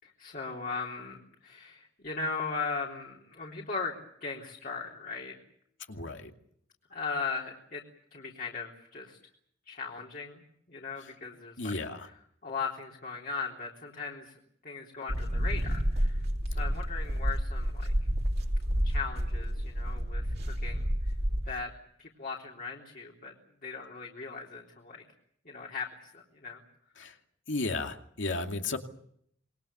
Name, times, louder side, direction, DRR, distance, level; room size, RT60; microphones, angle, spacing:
voice 1, 0.0-3.9 4.2-5.4 6.9-7.8 8.1-9.2 9.7-11.7 12.4-17.9 18.8-21.1 21.5-21.7 22.0-23.3 23.6-25.0 25.4-25.9 26.1-26.6, left 4 dB, 50° left, -2 dB, 3.7 m, -38 dB
voice 2, 5.9-6.3 11.0-11.1 11.6-12.1 27.0-27.2 27.5-28.8, left 3 dB, 75° left, 4 dB, 2.5 m, -34 dB
sound 1, 15.1-21.5, equal, 55° right, 2.9 m, -30 dB
27.0 x 22.0 x 7.0 m, 0.69 s
head